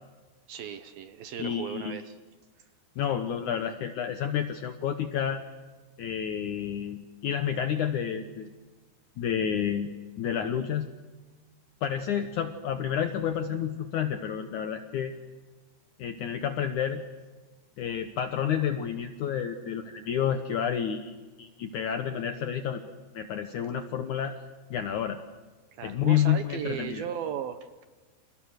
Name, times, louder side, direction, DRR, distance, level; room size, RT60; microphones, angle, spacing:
voice 1, 0.5-2.2 25.7-27.8, right 8 dB, 70° right, 9 dB, 2.5 m, -36 dB
voice 2, 1.4-2.0 3.0-5.4 6.0-8.5 9.2-9.9 10.2-10.9 11.8-15.1 16.0-17.0 17.8-22.8 23.1-24.3 24.7-25.2 25.8-27.1, left 9 dB, 80° left, 7 dB, 1.7 m, -30 dB
29.5 x 28.5 x 6.5 m, 1.3 s
omnidirectional pair, 5.1 m